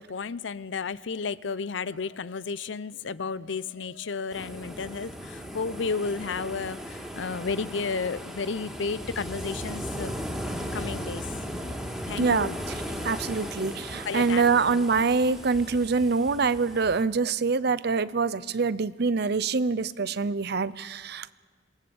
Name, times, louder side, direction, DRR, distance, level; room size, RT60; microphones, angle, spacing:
voice 1, 0.0-10.1 10.7-11.3 12.1-12.6 14.0-14.8, left 5 dB, 85° left, 17 dB, 0.6 m, -32 dB
sound 1, 4.3-17.0, equal, ahead, 3.1 m, -37 dB
voice 2, 12.2-12.5 13.0-21.3, right 4 dB, 60° right, 16 dB, 0.7 m, -25 dB
27.0 x 19.0 x 7.1 m, 1.5 s
head